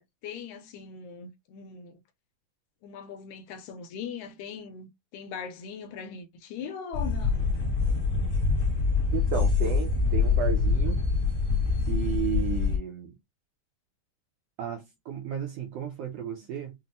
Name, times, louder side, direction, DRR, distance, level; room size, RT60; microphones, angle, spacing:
voice 1, 0.0-2.0 2.8-7.4, left 6 dB, 80° left, 2.0 m, -40 dB
sound 1, 6.9-12.8, left 4 dB, 60° left, 0.9 m, -25 dB
voice 2, 9.1-11.0 11.9-13.1 14.6-16.7, right 7 dB, 75° right, 1.5 m, -33 dB
5.8 x 2.1 x 2.6 m
omnidirectional pair, 3.5 m